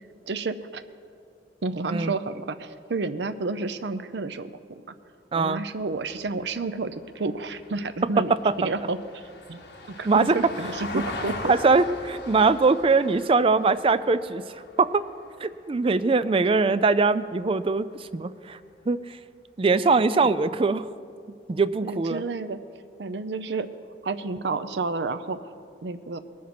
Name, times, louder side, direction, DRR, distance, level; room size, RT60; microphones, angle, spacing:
voice 1, 0.3-0.8 1.6-4.9 5.4-9.2 9.5-9.6 9.9-11.5 20.1-20.3 21.8-22.6 23.0-23.7 24.0-25.5 25.8-26.2, right 3 dB, 75° right, 11 dB, 0.6 m, -30 dB
voice 2, 5.3-5.6 8.2-8.5 10.1-10.4 11.5-14.4 14.8-15.0 15.4-18.6 18.9-19.0 19.6-20.9 21.5-22.2, right 4 dB, 30° right, 14 dB, 0.4 m, -22 dB
Vehicle, 5.7-16.2 18.5-18.6, left 2 dB, 80° left, 1.5 m, -41 dB
20.5 x 7.3 x 6.0 m, 2.3 s
head